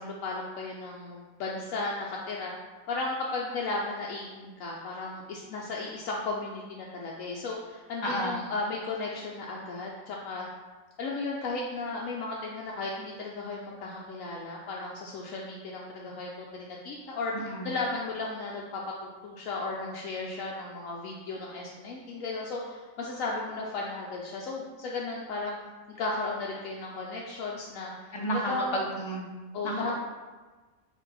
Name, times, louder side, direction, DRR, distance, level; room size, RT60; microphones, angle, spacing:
voice 1, 0.0-2.5 2.9-10.5 11.0-25.6 25.9-28.8 29.5-29.9, left 3 dB, 75° left, -3 dB, 0.9 m, -35 dB
voice 2, 8.0-8.4 17.5-17.7 28.1-28.4 28.7-29.3 29.6-29.9, equal, 30° left, -2 dB, 0.5 m, -31 dB
4.4 x 2.7 x 3.9 m, 1.3 s
omnidirectional pair, 1.4 m